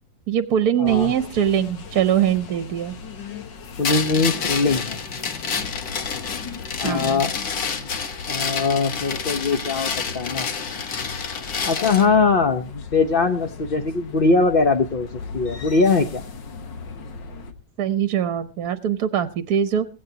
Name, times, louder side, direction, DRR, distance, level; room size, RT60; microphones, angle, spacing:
voice 1, 0.3-3.0 6.8-7.2 17.8-19.9, right 9 dB, 65° right, 11 dB, 1.2 m, -22 dB
sound 1, 0.8-17.5, left 5 dB, 85° left, 2.0 m, -38 dB
voice 2, 0.8-1.1 3.8-5.0 6.8-7.9 8.3-10.5 11.7-15.1 15.3-16.2, left 4 dB, 40° left, 7 dB, 0.8 m, -21 dB
sound 2, 3.8-12.1, left 5 dB, 60° left, 1.7 m, -29 dB
17.5 x 16.0 x 2.9 m, 0.33 s
omnidirectional pair, 1.9 m